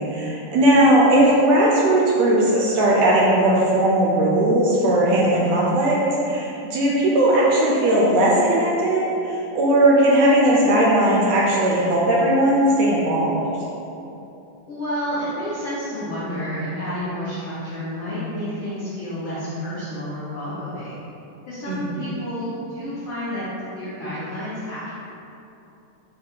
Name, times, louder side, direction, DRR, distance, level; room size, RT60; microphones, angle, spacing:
voice 1, 0.0-13.6 21.7-22.0, right 1 dB, 80° right, -4 dB, 1.5 m, -18 dB
voice 2, 14.7-20.9 21.5-23.4 23.7-24.9, equal, 70° left, -12 dB, 1.2 m, -30 dB
4.8 x 2.3 x 4.4 m, 2.9 s
omnidirectional pair, 3.5 m